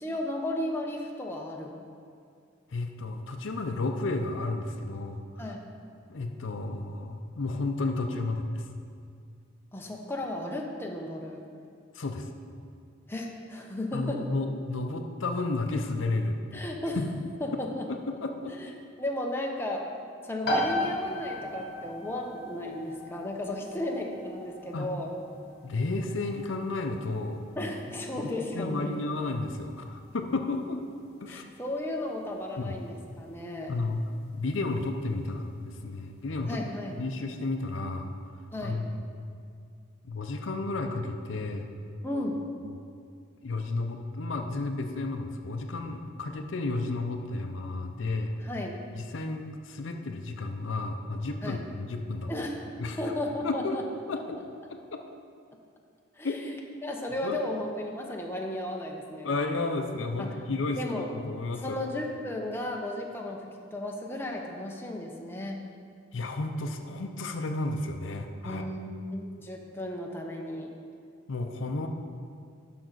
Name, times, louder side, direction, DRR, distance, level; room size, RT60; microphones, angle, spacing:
voice 1, 0.0-1.9 5.4-5.6 9.7-11.5 13.1-14.3 16.5-17.0 17.4-17.9 18.5-18.7 19.0-19.9 20.2-25.1 27.6-29.0 31.3-33.8 36.5-37.0 38.5-38.8 42.0-42.4 48.4-48.8 51.4-51.6 52.3-52.6 53.0-53.8 56.1-56.5 56.8-59.3 60.2-60.4 60.8-61.1 61.6-65.7 68.4-70.7, left 1 dB, 10° left, 0 dB, 0.7 m, -34 dB
voice 2, 2.7-5.3 6.1-8.7 11.9-12.3 13.9-16.7 17.0-17.1 18.1-18.5 24.7-24.9 25.6-27.4 28.2-28.3 28.5-30.8 31.2-31.4 32.6-32.8 33.7-34.0 34.3-36.6 37.0-38.1 38.6-38.9 40.0-41.7 42.6-42.8 43.4-48.3 49.0-52.3 52.8-53.0 53.4-53.8 54.1-54.4 56.2-56.4 57.2-57.4 59.2-60.8 61.1-61.8 66.1-68.6 71.3-71.9, left 2 dB, 70° left, 5 dB, 0.6 m, -32 dB
sound 1, 20.4-34.9, left 1 dB, 50° left, 1.2 m, -38 dB
10.5 x 6.0 x 3.9 m, 2.3 s
head